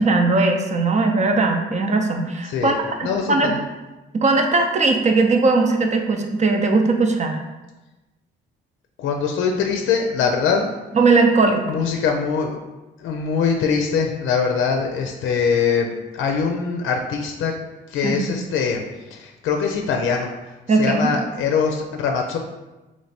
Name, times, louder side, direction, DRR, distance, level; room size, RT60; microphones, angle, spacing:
voice 1, 0.0-2.7 3.0-3.5 4.1-7.4 10.9-11.7 18.0-18.3 20.7-21.1, right 3 dB, 35° right, 4 dB, 0.6 m, -19 dB
voice 2, 2.4-3.6 9.0-10.7 11.7-12.6 13.0-17.5 17.9-18.8 19.1-20.3 20.7-22.4, left 6 dB, 85° left, 2 dB, 0.5 m, -22 dB
3.2 x 3.0 x 4.2 m, 1.1 s
cardioid pair, 90°, 20 cm